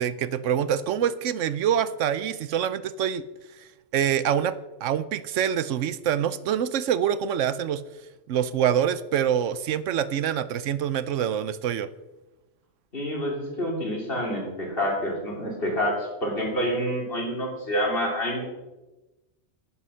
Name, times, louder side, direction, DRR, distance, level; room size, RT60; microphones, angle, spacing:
voice 1, 0.0-3.2 3.6-4.5 4.8-7.8 8.3-11.9, right 9 dB, 75° right, 15 dB, 1.0 m, -25 dB
voice 2, 12.9-18.4, equal, 45° left, -1 dB, 3.3 m, -28 dB
11.5 x 9.6 x 5.7 m, 1.1 s
omnidirectional pair, 1.3 m